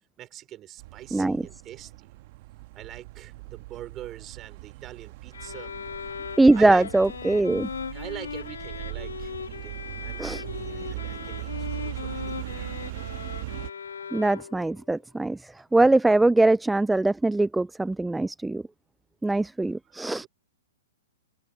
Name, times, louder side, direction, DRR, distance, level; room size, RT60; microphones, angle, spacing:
voice 1, 0.2-2.2 2.7-5.7 6.5-6.9 7.9-12.7 19.9-20.3, right 13 dB, 25° right, 4.5 m, -43 dB
sound 1, 0.8-13.7, right 20 dB, 50° right, 1.6 m, -39 dB
voice 2, 1.1-1.4 6.4-7.7 10.2-10.4 14.1-18.6 19.2-20.3, right 2 dB, 5° right, 0.3 m, -22 dB
sound 2, 5.3-14.8, left 6 dB, 80° left, 2.2 m, -38 dB
open air
hypercardioid pair, 120°, 0 cm